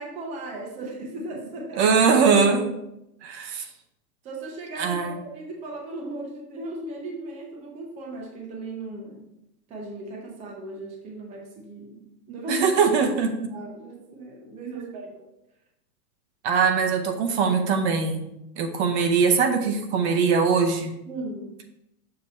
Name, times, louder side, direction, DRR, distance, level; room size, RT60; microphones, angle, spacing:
voice 1, 0.0-2.0 4.2-9.3 9.7-12.7 13.5-15.3 21.1-21.6, right 1 dB, 15° right, 0 dB, 0.6 m, -37 dB
voice 2, 1.8-2.7 3.2-3.7 4.8-5.2 12.5-13.5 14.7-14.9 16.4-18.3 18.6-20.9, right 5 dB, 45° right, 5 dB, 0.8 m, -21 dB
6.7 x 2.8 x 5.4 m, 0.84 s
supercardioid pair, 150°, 47 cm